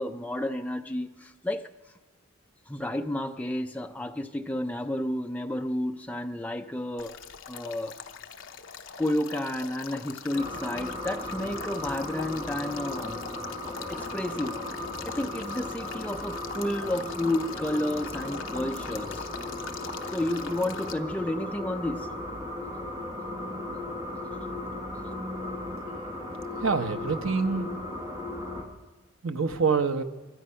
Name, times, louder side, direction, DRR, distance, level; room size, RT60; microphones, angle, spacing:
voice 1, 0.0-1.7 2.7-7.2 7.5-7.9 9.0-13.3 13.9-14.6 15.0-19.3 20.1-22.1, left 1 dB, 5° left, 5 dB, 0.5 m, -31 dB
Male speech man speaking / Stream / Trickle dribble, 7.0-20.9, left 6 dB, 60° left, 0.7 m, -43 dB
sound 1, 10.3-28.6, left 1 dB, 15° right, 1.4 m, -36 dB
voice 2, 26.6-27.7 29.2-30.0, right 5 dB, 70° right, 8 dB, 0.9 m, -26 dB
23.5 x 8.6 x 5.6 m, 1.2 s
head